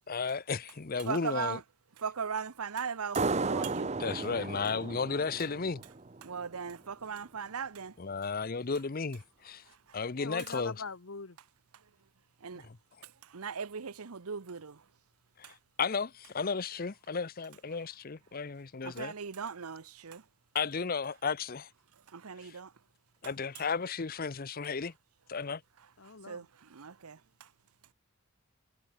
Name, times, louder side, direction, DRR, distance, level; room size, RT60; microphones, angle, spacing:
voice 1, 0.1-1.6 4.0-5.8 8.0-9.6 9.9-10.7 12.5-12.8 15.8-19.1 20.5-21.7 23.2-24.9 25.3-25.6, left 5 dB, 40° left, 0.7 m, -34 dB
voice 2, 1.0-1.6 2.0-3.9 6.2-7.9 12.4-12.7 13.3-14.8 15.4-15.5 18.8-20.2 22.1-22.7 26.3-27.2, right 6 dB, 85° right, 0.8 m, -38 dB
sound 1, 3.2-6.5, right 3 dB, 30° right, 0.8 m, -34 dB
voice 3, 10.1-11.4 26.0-26.5, left 4 dB, 65° left, 1.2 m, -42 dB
head